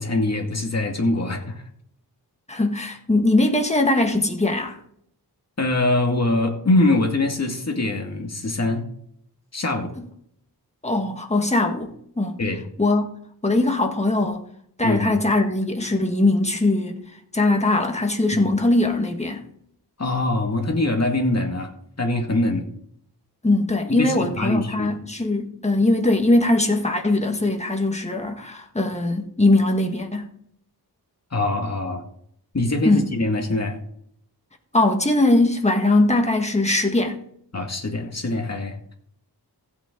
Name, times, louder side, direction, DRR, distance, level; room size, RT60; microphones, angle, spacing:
voice 1, 0.0-1.6 5.6-8.8 9.5-9.9 12.4-12.6 14.8-15.2 18.3-18.5 20.0-21.7 22.0-22.7 23.9-24.9 31.3-32.0 32.5-33.8 37.5-39.0, left 2 dB, 40° left, 2.2 m, -23 dB
voice 2, 2.5-4.8 10.8-12.4 12.8-13.1 13.4-14.5 14.8-17.1 17.3-19.4 23.4-30.3 32.8-33.0 34.7-37.2, left 2 dB, 15° left, 1.7 m, -21 dB
15.5 x 8.5 x 3.9 m
wide cardioid pair, 100°, 39 cm